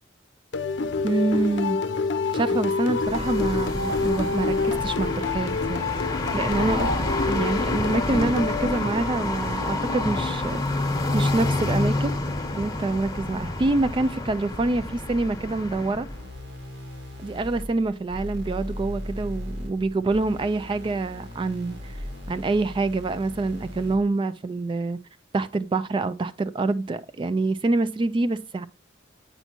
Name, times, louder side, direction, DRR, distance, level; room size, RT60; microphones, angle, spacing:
sound 1, 0.5-9.5, left 4 dB, 65° left, 0.6 m, -27 dB
voice 1, 1.0-1.8 2.3-5.8 6.3-6.9 7.3-10.8 11.1-12.1 12.5-16.1 17.2-21.9 22.3-25.0 25.3-28.6, right 2 dB, 25° right, 0.3 m, -26 dB
sound 2, 2.9-16.2, left 2 dB, 20° left, 1.0 m, -28 dB
sound 3, 16.1-24.1, left 1 dB, 65° right, 2.0 m, -38 dB
8.1 x 5.5 x 2.9 m
head